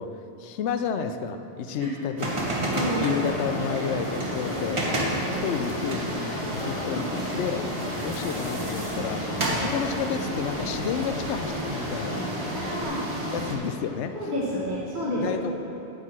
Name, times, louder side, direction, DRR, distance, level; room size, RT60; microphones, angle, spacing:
voice 1, 0.0-2.4 3.0-4.8 5.3-7.0 7.3-12.3 13.3-14.2 15.2-15.7, left 7 dB, 85° left, 8 dB, 0.9 m, -31 dB
sound 1, 2.2-13.5, right 1 dB, 30° right, 1.2 m, -30 dB
voice 2, 2.7-3.0 4.5-4.6 5.1-5.3 12.5-13.0 14.1-15.2, equal, 45° right, -7 dB, 1.7 m, -30 dB
Crowd, 2.9-12.8, left 2 dB, 40° left, 0.6 m, -37 dB
9.4 x 4.6 x 7.4 m, 2.9 s
omnidirectional pair, 1.2 m